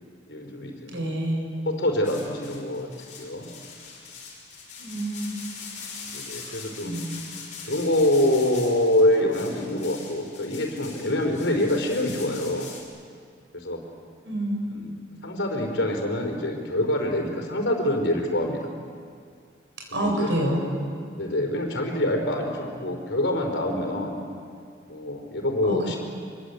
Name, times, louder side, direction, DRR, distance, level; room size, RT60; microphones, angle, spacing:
voice 1, 0.3-1.0 1.6-2.9 3.2-3.5 6.1-6.9 7.7-12.7 13.5-13.8 14.7-14.9 15.2-18.7 19.9-20.3 21.1-24.2 24.9-26.0, left 1 dB, 80° left, 2 dB, 4.6 m, -25 dB
voice 2, 0.9-1.5 4.8-5.3 6.4-7.1 14.2-14.7 19.9-20.6 25.6-25.8, right 1 dB, 80° right, 0 dB, 7.2 m, -28 dB
sound 1, 2.0-12.8, left 5 dB, 40° left, 6.3 m, -42 dB
25.5 x 22.5 x 8.3 m, 2.2 s
head